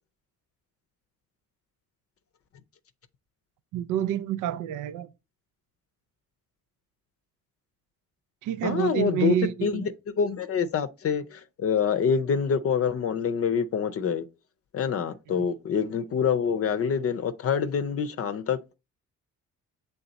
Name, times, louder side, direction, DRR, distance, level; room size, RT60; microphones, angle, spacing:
voice 1, 3.7-5.1 8.4-9.8 15.3-15.5, right 10 dB, 85° right, 0.5 m, -28 dB
voice 2, 8.6-9.4 9.6-9.8 10.2-14.3 14.7-18.8, left 6 dB, 50° left, 0.6 m, -26 dB
6.9 x 3.5 x 3.9 m
cardioid pair, 90°, 30 cm